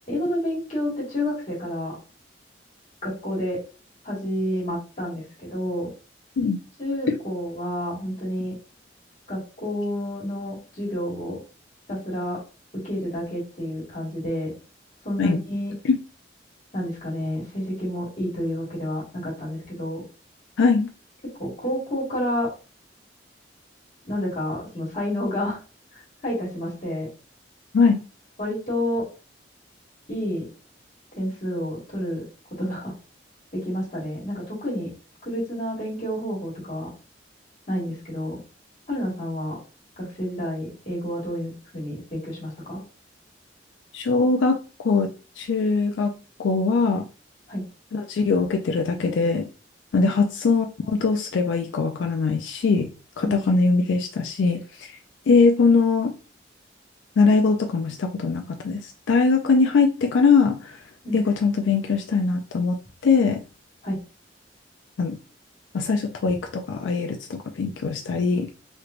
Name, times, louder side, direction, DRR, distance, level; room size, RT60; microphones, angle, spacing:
voice 1, 0.1-1.9 3.0-3.6 4.0-5.9 6.8-8.5 9.3-11.4 11.9-12.4 12.7-14.5 15.0-15.7 16.7-20.0 21.4-22.5 24.0-25.6 25.9-27.1 28.4-29.1 30.1-30.5 31.2-32.2 32.6-32.9 33.5-34.9 35.2-36.9 37.7-38.4 38.9-39.6 40.0-42.8 47.5-47.6 53.2-53.4 61.0-61.2 63.8-64.0, equal, 40° left, -4 dB, 1.6 m, -29 dB
voice 2, 20.6-20.9 27.7-28.0 43.9-44.6 44.8-45.1 45.4-47.1 47.9-49.5 49.9-52.9 53.2-55.0 55.3-56.1 57.2-60.8 61.1-62.8 63.0-63.4 65.0-65.2 65.7-68.5, left 4 dB, 85° left, 3 dB, 0.4 m, -21 dB
3.2 x 3.0 x 2.4 m, 0.35 s
head